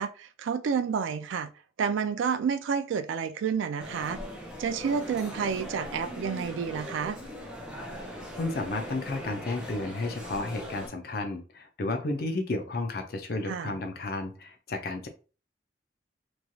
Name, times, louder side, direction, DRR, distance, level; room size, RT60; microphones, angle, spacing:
voice 1, 0.0-1.5 1.8-4.2 4.6-7.2 13.5-13.7, right 6 dB, 85° right, 0.3 m, -30 dB
sound 1, 3.8-10.9, equal, 5° right, 0.5 m, -40 dB
voice 2, 8.4-15.1, left 2 dB, 55° left, 0.5 m, -32 dB
3.0 x 2.3 x 2.6 m
head